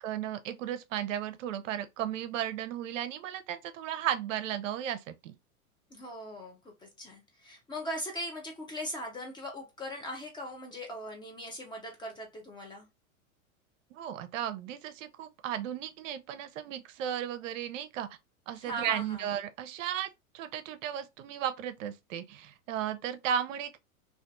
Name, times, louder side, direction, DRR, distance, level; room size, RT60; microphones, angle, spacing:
voice 1, 0.0-5.3 13.9-18.2 18.5-23.8, right 10 dB, 65° right, 0.5 m, -35 dB
voice 2, 5.9-12.9 18.6-19.2, equal, 10° left, 0.4 m, -40 dB
2.5 x 2.4 x 2.2 m
hypercardioid pair, 110°, 42 cm